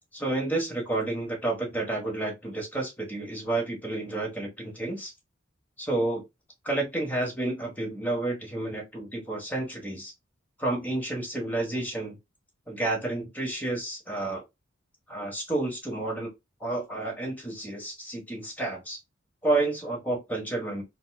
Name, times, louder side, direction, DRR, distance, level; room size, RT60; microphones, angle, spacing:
voice 1, 0.1-5.1 5.8-6.2 6.6-10.1 10.6-12.2 12.7-14.4 15.1-16.3 16.6-19.0 19.4-20.8, right 2 dB, 10° left, 1.3 m, -30 dB
4.1 x 2.3 x 2.3 m
head